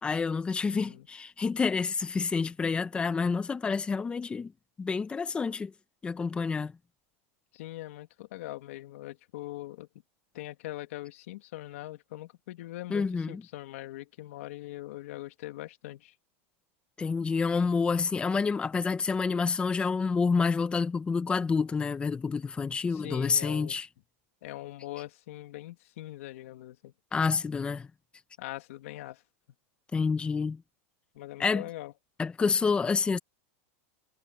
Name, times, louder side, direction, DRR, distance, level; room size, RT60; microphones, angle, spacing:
voice 1, 0.0-4.5 4.8-5.7 6.0-6.7 12.9-13.4 17.0-23.9 27.1-27.9 29.9-30.6 31.4-31.6 32.2-33.2, left 5 dB, 15° left, 1.1 m, -28 dB
voice 2, 0.7-1.1 7.5-9.9 10.3-16.1 22.9-23.8 24.4-26.9 28.4-29.2 31.1-31.9, left 16 dB, 75° left, 2.6 m, -42 dB
supercardioid pair, 140°, 7 cm